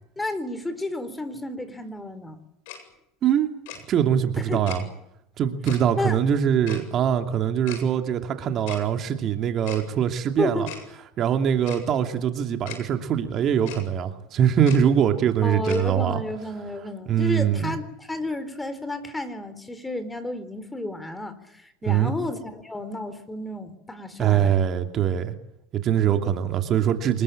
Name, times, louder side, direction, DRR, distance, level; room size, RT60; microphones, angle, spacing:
voice 1, 0.2-2.4 4.4-4.7 6.0-6.2 10.4-10.7 15.4-24.7, left 1 dB, 10° left, 12 dB, 4.0 m, -31 dB
Tick-tock, 2.7-2.8 3.7-3.8 4.7-4.8 5.7-5.8 6.7-6.8 7.7-7.8 8.7-8.8 9.7-9.8 10.7-10.8 11.7-11.8 12.7-12.8 13.7-13.8 14.7-14.8 15.7-15.8, left 9 dB, 75° left, 7.8 m, -37 dB
voice 2, 3.2-3.5 3.9-4.8 5.4-10.7 11.2-16.2 17.1-17.7 21.9-22.1 24.2-25.3 25.7-27.2, right 9 dB, 45° right, 6 dB, 2.7 m, -23 dB
25.5 x 21.0 x 8.9 m, 0.81 s
supercardioid pair, 100°, 0 cm